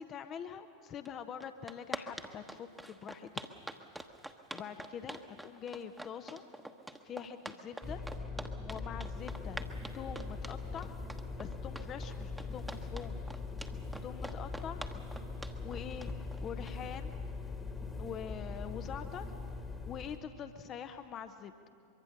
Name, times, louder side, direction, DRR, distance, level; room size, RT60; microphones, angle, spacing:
voice 1, 0.0-3.3 4.5-6.4 7.0-8.0 8.6-9.6 9.9-11.0 11.4-13.2 14.0-14.8 15.6-16.1 16.4-17.1 18.0-19.3 19.9-21.7, left 8 dB, 30° left, 9 dB, 0.9 m, -44 dB
sound 1, 1.0-1.1 1.4-17.0, right 1 dB, 5° right, 1.2 m, -45 dB
sound 2, 7.8-20.2, left 3 dB, 15° left, 1.6 m, -41 dB
23.5 x 23.5 x 6.6 m, 2.6 s
figure-of-eight pair, 85°, 0 cm